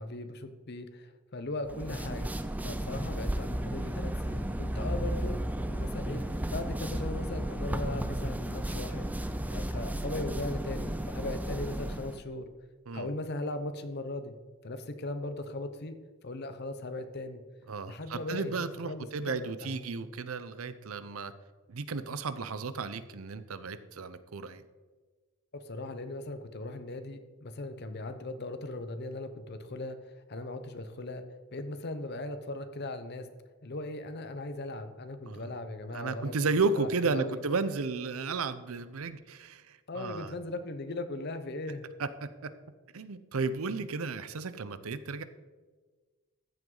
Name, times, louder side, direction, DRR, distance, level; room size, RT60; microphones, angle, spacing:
voice 1, 0.0-6.2 6.5-12.5 12.9-14.3 14.6-16.0 16.2-17.4 17.9-18.6 18.8-19.7 25.5-31.2 31.5-33.3 33.6-37.4 39.9-41.9, left 2 dB, 50° left, 9 dB, 0.9 m, -38 dB
sound 1, 1.7-12.2, right 1 dB, 5° right, 0.4 m, -34 dB
voice 2, 17.7-21.3 21.7-24.6 35.3-35.5 35.9-40.3 42.0-42.5 42.9-45.2, right 4 dB, 80° right, 13 dB, 0.7 m, -33 dB
14.0 x 7.8 x 3.9 m, 1.4 s
head